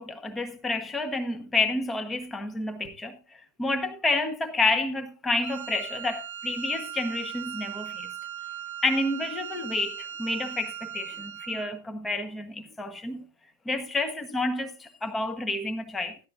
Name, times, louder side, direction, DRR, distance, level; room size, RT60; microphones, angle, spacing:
voice 1, 0.0-8.1 8.8-13.2 13.6-16.2, left 2 dB, 10° left, 1.2 m, -29 dB
Wind instrument woodwind instrument, 5.4-11.8, right 10 dB, 50° right, 1.0 m, -38 dB
14.5 x 11.5 x 2.6 m
figure-of-eight pair, 90°, 0 cm